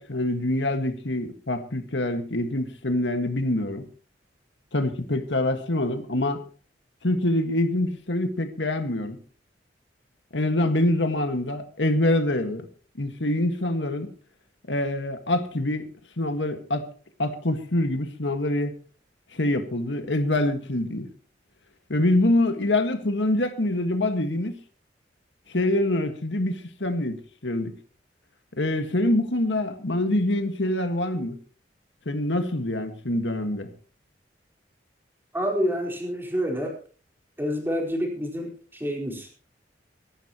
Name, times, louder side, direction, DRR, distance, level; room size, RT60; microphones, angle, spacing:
voice 1, 0.0-3.9 4.7-6.4 7.0-9.2 10.3-12.7 13.0-14.1 14.7-16.9 17.2-18.7 19.3-21.1 21.9-24.6 25.5-27.7 28.6-31.4 32.1-33.7, left 1 dB, 80° left, 1.7 m, -25 dB
voice 2, 35.3-36.7 37.4-39.3, equal, 10° right, 4.2 m, -28 dB
24.0 x 11.5 x 3.0 m
head